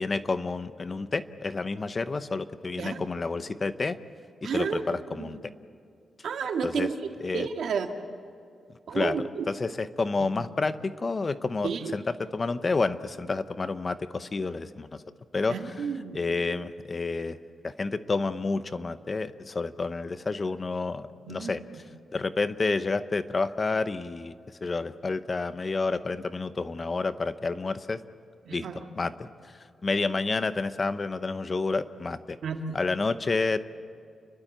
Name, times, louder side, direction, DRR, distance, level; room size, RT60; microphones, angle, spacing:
voice 1, 0.0-4.0 4.4-5.4 6.6-6.9 7.2-7.5 8.9-15.0 15.3-15.9 16.1-17.4 17.6-21.8 22.1-24.3 24.6-28.0 28.5-32.4 32.7-33.6, left 3 dB, 30° left, 12 dB, 0.8 m, -30 dB
voice 2, 4.4-5.3 6.2-6.9 7.3-7.9 8.9-9.5 11.6-11.9 15.5-16.2 21.2-21.5 28.5-28.8 32.4-32.8, right 6 dB, 80° right, 4 dB, 2.0 m, -31 dB
30.0 x 12.0 x 8.6 m, 2.3 s
wide cardioid pair, 120°, 0 cm